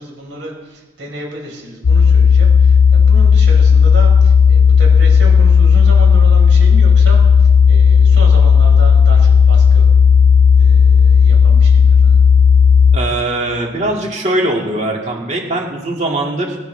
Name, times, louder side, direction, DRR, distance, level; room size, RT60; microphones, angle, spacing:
voice 1, 0.0-9.9 10.6-12.2, right 1 dB, 85° right, -1 dB, 5.0 m, -31 dB
sound 1, 1.8-13.0, left 6 dB, 55° left, 0.3 m, -9 dB
voice 2, 12.9-16.6, right 1 dB, 40° right, -1 dB, 2.5 m, -20 dB
22.5 x 9.9 x 3.5 m, 1.3 s
head